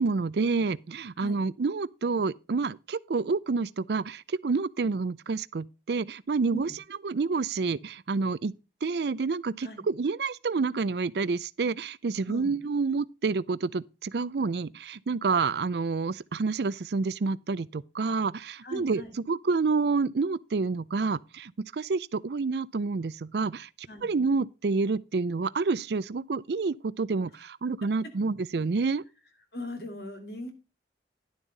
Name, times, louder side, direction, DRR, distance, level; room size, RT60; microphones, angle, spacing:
voice 1, 0.0-6.7 7.0-8.5 8.8-19.0 19.3-23.7 24.0-29.0, right 4 dB, 70° right, 0.5 m, -28 dB
voice 2, 18.6-19.2 23.9-24.1 27.8-27.9 29.5-30.5, left 1 dB, 65° left, 2.7 m, -39 dB
11.5 x 7.2 x 3.9 m
head